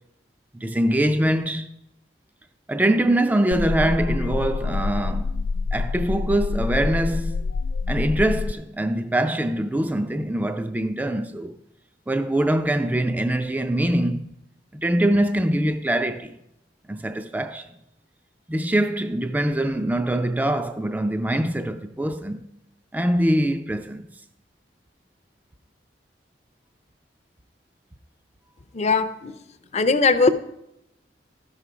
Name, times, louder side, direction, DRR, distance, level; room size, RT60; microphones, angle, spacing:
voice 1, 0.5-1.7 2.7-5.4 5.7-7.5 7.9-11.6 12.1-14.3 14.7-16.4 16.9-17.7 18.5-22.4 22.9-24.1, right 1 dB, 10° right, 0.4 m, -23 dB
sound 1, 3.5-8.5, left 4 dB, 85° left, 0.3 m, -26 dB
voice 2, 28.7-29.3 29.7-30.3, left 4 dB, 35° left, 0.5 m, -19 dB
13.0 x 5.7 x 5.0 m
head